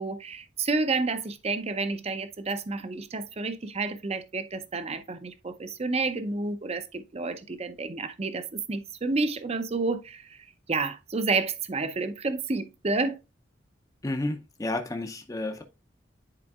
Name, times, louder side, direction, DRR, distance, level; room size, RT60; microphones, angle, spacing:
voice 1, 0.0-10.4 10.7-13.2, right 3 dB, 35° right, 0.6 m, -30 dB
voice 2, 14.0-15.6, left 2 dB, 20° left, 0.6 m, -31 dB
9.7 x 4.4 x 2.4 m
head